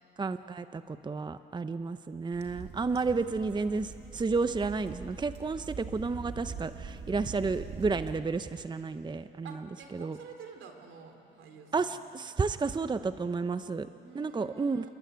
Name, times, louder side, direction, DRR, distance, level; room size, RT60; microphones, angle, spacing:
voice 1, 0.2-9.6 9.9-10.2 11.7-13.9 14.1-14.9, right 4 dB, 20° right, 11 dB, 0.7 m, -31 dB
sound 1, 2.3-8.2, right 6 dB, 55° right, 2.4 m, -43 dB
voice 2, 9.4-12.0 13.9-14.9, right 5 dB, 80° right, 5 dB, 3.7 m, -50 dB
28.0 x 21.5 x 9.5 m, 2.8 s
cardioid pair, 90°, 20 cm